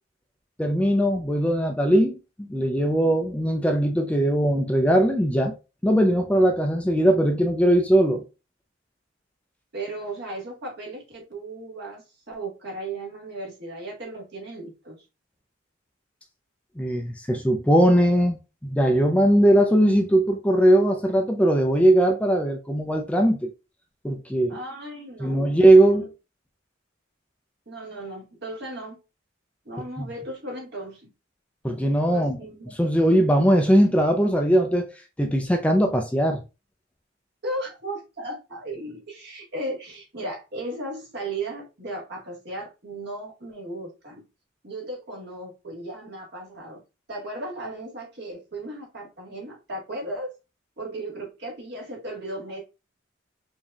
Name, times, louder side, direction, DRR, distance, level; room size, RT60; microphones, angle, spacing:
voice 1, 0.6-5.5 5.8-8.2 16.8-18.4 18.6-23.5 24.0-24.6 25.2-26.1 31.6-32.4 32.8-34.9 35.2-36.4, right 1 dB, 5° left, 0.4 m, -20 dB
voice 2, 9.7-15.0 24.5-25.5 25.9-26.1 27.6-29.0 29.6-31.1 32.1-32.7 37.4-44.2 44.6-46.8 47.1-50.3 50.8-52.6, right 1 dB, 55° right, 1.6 m, -36 dB
4.9 x 2.7 x 2.3 m
head